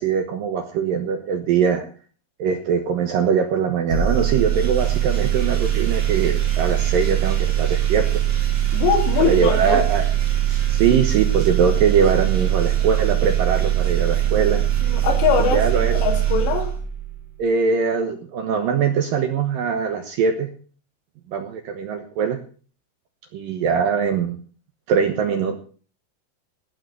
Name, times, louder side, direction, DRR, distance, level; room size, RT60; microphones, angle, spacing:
voice 1, 0.0-1.9 2.4-8.2 9.2-10.1 10.7-14.6 15.5-16.0 17.4-20.5 21.3-22.4 23.3-24.4 24.9-25.6, right 6 dB, 70° right, 6 dB, 2.3 m, -22 dB
sound 1, 3.9-17.3, right 12 dB, 35° right, 2.0 m, -21 dB
voice 2, 8.7-9.8 14.8-15.6 16.0-16.7, left 7 dB, 70° left, 3 dB, 4.6 m, -21 dB
17.5 x 6.9 x 6.6 m, 0.41 s
omnidirectional pair, 5.2 m